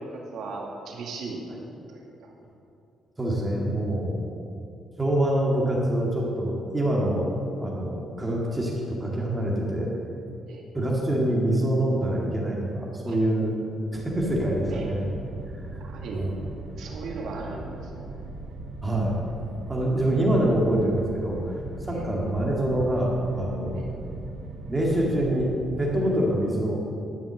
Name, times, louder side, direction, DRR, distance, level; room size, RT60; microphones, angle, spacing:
voice 1, 0.0-1.5 1.9-2.3 10.5-10.6 13.1-13.2 14.7-14.9 15.8-16.2 16.8-18.1 21.9-22.0 23.7-23.9, right 3 dB, 70° right, -1 dB, 2.2 m, -37 dB
voice 2, 3.2-4.2 5.0-7.3 7.6-9.9 10.7-13.6 13.9-15.1 15.7-15.8 16.1-16.4 18.8-19.2 19.7-23.9 24.7-26.8, right 1 dB, 20° right, -3 dB, 2.1 m, -25 dB
sound 1, 13.9-25.6, right 2 dB, 90° right, 1.2 m, -39 dB
11.5 x 6.1 x 7.5 m, 2.6 s
cardioid pair, 90°, 0 cm